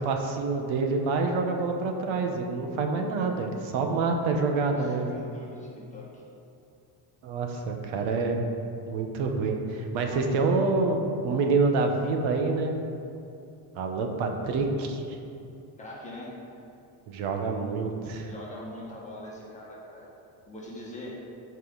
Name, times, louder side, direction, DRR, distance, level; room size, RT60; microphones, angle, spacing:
voice 1, 0.0-5.2 7.2-8.4 8.9-11.0 11.2-12.8 13.8-15.0 17.1-18.3, right 3 dB, 75° right, 4 dB, 1.1 m, -27 dB
voice 2, 4.7-6.2 10.1-10.6 15.8-16.3 18.3-20.1 20.5-21.2, left 1 dB, 15° left, -5 dB, 1.8 m, -42 dB
13.5 x 5.4 x 3.9 m, 2.7 s
cardioid pair, 165°, 47 cm